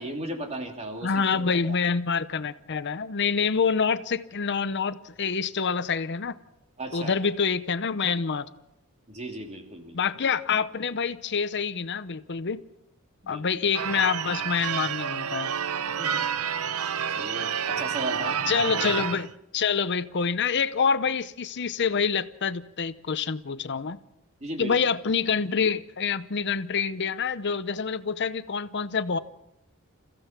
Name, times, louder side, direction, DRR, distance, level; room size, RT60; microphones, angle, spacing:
voice 1, 0.0-1.8 6.8-7.2 9.1-10.0 13.2-13.4 16.0-16.3 16.6-18.4 24.4-24.8, right 1 dB, 30° right, 3 dB, 3.0 m, -36 dB
voice 2, 1.0-6.4 6.9-8.5 9.9-12.6 13.3-15.5 18.5-24.0 24.6-29.2, left 6 dB, 55° left, 13 dB, 0.7 m, -26 dB
Church bell / Car / Alarm, 13.7-19.3, right 7 dB, 85° right, 0.8 m, -29 dB
29.0 x 16.0 x 5.9 m, 0.89 s
head